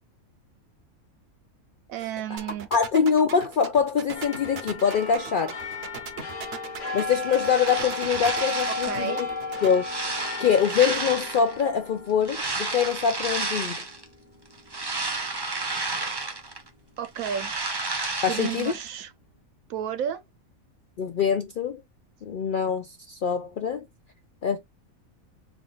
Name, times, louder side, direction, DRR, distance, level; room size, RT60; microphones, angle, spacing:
voice 1, 1.9-2.7 8.7-9.2 17.0-17.5 18.3-19.1 19.7-20.2, right 9 dB, 75° right, 1.1 m, -32 dB
sound 1, 2.4-9.7, right 6 dB, 55° right, 0.8 m, -38 dB
voice 2, 2.7-5.6 6.9-9.3 9.6-9.8 10.4-13.8 18.2-18.7 21.0-21.8 22.2-23.9 24.4-24.6, left 7 dB, 75° left, 0.4 m, -24 dB
sound 2, 4.1-14.9 15.3-15.4, left 3 dB, 35° left, 1.0 m, -35 dB
sound 3, 7.1-9.1 9.5-11.6 12.2-14.0 14.5-16.7 17.0-18.9, right 3 dB, 25° right, 0.5 m, -31 dB
3.5 x 2.4 x 3.7 m
omnidirectional pair, 1.5 m